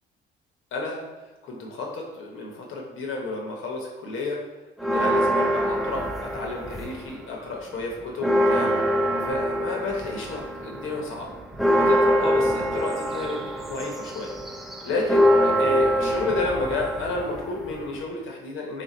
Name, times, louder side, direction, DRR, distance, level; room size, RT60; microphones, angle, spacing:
voice 1, 0.7-1.0 1.4-4.4 4.8-8.7 9.2-11.4 11.7-14.3 14.8-18.8, left 3 dB, 80° left, 0 dB, 0.9 m, -31 dB
sound 1, 4.8-7.2 7.5-18.0, equal, ahead, 0.4 m, -24 dB
3.7 x 2.5 x 4.1 m, 1.1 s
cardioid pair, 90°, 20 cm